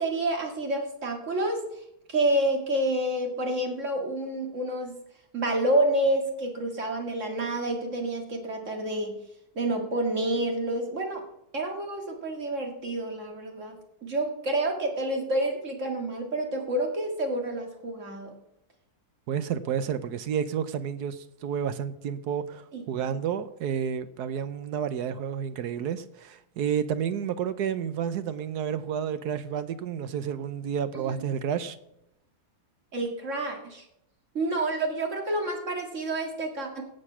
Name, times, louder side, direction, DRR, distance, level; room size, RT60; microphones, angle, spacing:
voice 1, 0.0-1.6 2.1-5.0 5.3-9.2 9.6-11.2 11.5-18.3 22.7-22.8 31.0-31.2 32.9-33.8 34.3-36.8, right 1 dB, 50° right, 2.4 m, -28 dB
voice 2, 19.3-31.8, right 8 dB, 90° right, 1.4 m, -30 dB
17.0 x 6.5 x 6.1 m
omnidirectional pair, 1.7 m